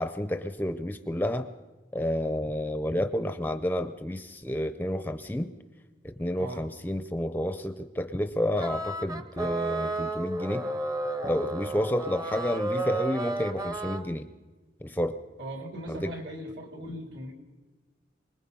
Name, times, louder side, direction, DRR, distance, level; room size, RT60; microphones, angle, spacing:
voice 1, 0.0-1.5 1.9-5.5 6.0-10.7 11.2-14.3 14.8-15.2 15.9-16.1, left 1 dB, 10° left, 10 dB, 0.6 m, -30 dB
sound 1, 8.6-14.0, right 2 dB, 20° right, 0.8 m, -32 dB
voice 2, 15.4-17.3, equal, 70° right, 2 dB, 3.6 m, -39 dB
25.0 x 20.0 x 5.5 m, 1.2 s
head